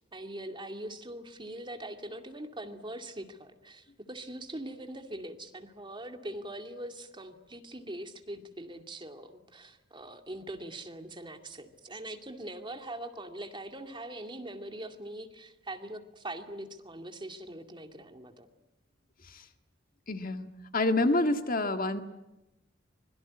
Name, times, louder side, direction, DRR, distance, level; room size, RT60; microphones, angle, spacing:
voice 1, 0.1-18.5, right 1 dB, 25° right, 5 dB, 2.2 m, -42 dB
voice 2, 20.1-22.0, left 2 dB, 50° left, 7 dB, 1.8 m, -28 dB
25.5 x 22.0 x 9.6 m, 0.99 s
head